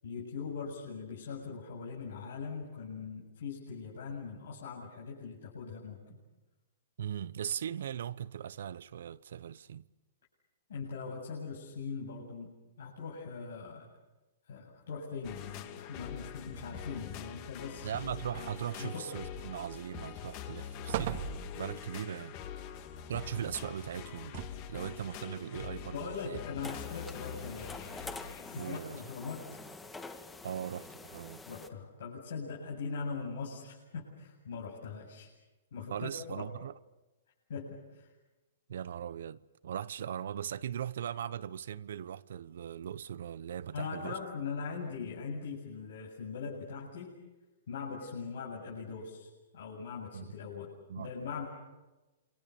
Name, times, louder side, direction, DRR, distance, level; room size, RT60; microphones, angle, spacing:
voice 1, 0.0-6.2 10.7-12.5 12.8-13.9 14.5-17.9 18.8-19.1 25.9-27.8 28.5-29.6 31.5-35.3 35.7-36.5 37.5-38.1 43.7-47.1 47.7-50.7 51.0-51.5, left 5 dB, 75° left, 7.9 m, -41 dB
voice 2, 7.0-9.8 17.8-22.4 23.1-26.7 28.5-29.0 30.4-31.4 35.9-36.7 38.7-44.2 50.1-50.3 50.9-51.1, right 9 dB, 70° right, 1.0 m, -39 dB
sound 1, 15.2-28.8, left 9 dB, 40° left, 2.8 m, -44 dB
sound 2, 19.3-19.9 20.3-20.4 20.9-21.9 24.0-24.8 25.6-25.7, right 11 dB, 55° right, 2.1 m, -39 dB
sound 3, 26.6-31.7, left 3 dB, 10° left, 2.0 m, -46 dB
28.0 x 25.0 x 7.1 m
hypercardioid pair, 145°, 0 cm